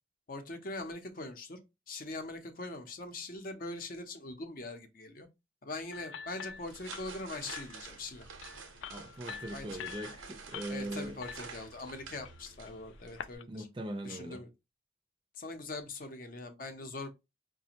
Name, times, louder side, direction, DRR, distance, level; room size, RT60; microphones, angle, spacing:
voice 1, 0.3-1.6 1.9-5.3 5.6-8.3 9.5-9.7 10.7-13.7 14.0-14.5 15.4-17.1, left 2 dB, 45° left, 0.6 m, -42 dB
sound 1, 5.9-13.4, left 8 dB, 75° left, 0.3 m, -47 dB
sound 2, 6.5-13.4, right 5 dB, 90° right, 0.7 m, -49 dB
voice 2, 8.9-11.2 13.5-14.4, right 1 dB, 25° right, 0.4 m, -40 dB
4.9 x 2.2 x 2.8 m
head